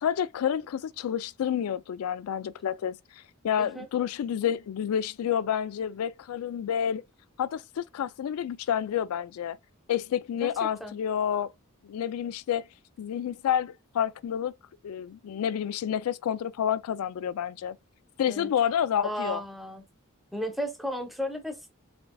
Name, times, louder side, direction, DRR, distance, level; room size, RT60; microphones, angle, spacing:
voice 1, 0.0-3.0 3.4-7.0 7.4-9.6 9.9-11.5 11.8-12.6 13.0-14.5 14.8-17.8 18.2-19.4, left 9 dB, 80° left, 0.3 m, -29 dB
voice 2, 19.0-19.8 20.3-21.7, equal, ahead, 0.8 m, -34 dB
4.3 x 2.6 x 2.2 m
head